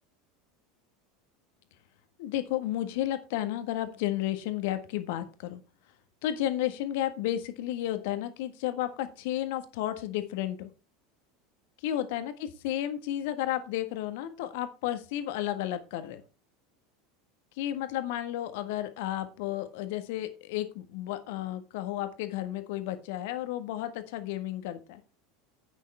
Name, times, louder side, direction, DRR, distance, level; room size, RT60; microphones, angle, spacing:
voice 1, 2.2-5.6 6.2-10.7 11.8-16.2 17.6-25.0, left 13 dB, 60° left, 9 dB, 1.6 m, -32 dB
11.0 x 9.0 x 3.5 m, 0.33 s
figure-of-eight pair, 75°, 0 cm